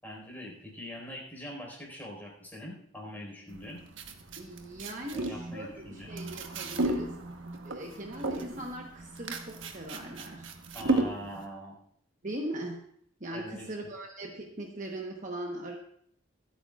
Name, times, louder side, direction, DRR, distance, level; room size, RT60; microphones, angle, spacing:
voice 1, 0.0-3.8 5.1-6.1 10.7-11.7 13.3-13.7, equal, 10° left, -2 dB, 4.5 m, -43 dB
sound 1, 3.5-11.5, right 2 dB, 75° right, 1.2 m, -34 dB
voice 2, 4.4-7.2 7.6-10.5 12.2-12.8 13.2-15.8, right 1 dB, 40° right, 0 dB, 1.1 m, -40 dB
25.0 x 8.8 x 2.4 m, 0.67 s
head